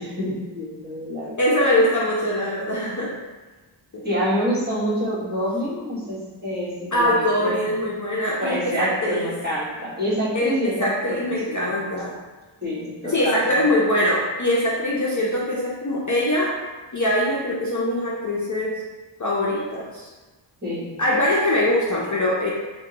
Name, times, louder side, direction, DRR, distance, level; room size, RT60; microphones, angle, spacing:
voice 1, 0.0-1.4 4.0-7.5 8.4-11.7 12.6-13.5 20.6-21.0, equal, 20° right, -10 dB, 1.4 m, -27 dB
voice 2, 1.4-3.1 3.9-4.0 6.9-9.3 10.3-12.1 13.0-16.5 16.9-18.8 19.2-20.1 21.0-22.5, left 1 dB, 40° left, -5 dB, 0.5 m, -22 dB
2.7 x 2.2 x 3.8 m, 1.2 s
wide cardioid pair, 45°, 49 cm